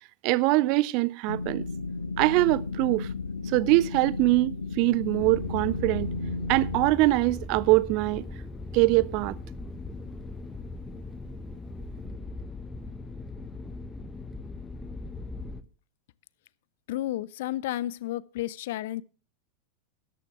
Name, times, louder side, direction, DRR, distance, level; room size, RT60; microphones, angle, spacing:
voice 1, 0.2-1.7 2.2-3.1 3.5-6.1 6.5-8.2 8.7-9.4, right 20 dB, 45° right, 0.6 m, -23 dB
sound 1, 1.3-6.9, left 3 dB, 75° left, 1.3 m, -34 dB
on the commuter train, 5.2-15.6, left 2 dB, 10° left, 1.2 m, -39 dB
voice 2, 16.9-19.0, left 14 dB, 55° left, 0.5 m, -32 dB
13.5 x 12.5 x 3.4 m
figure-of-eight pair, 90°, 0 cm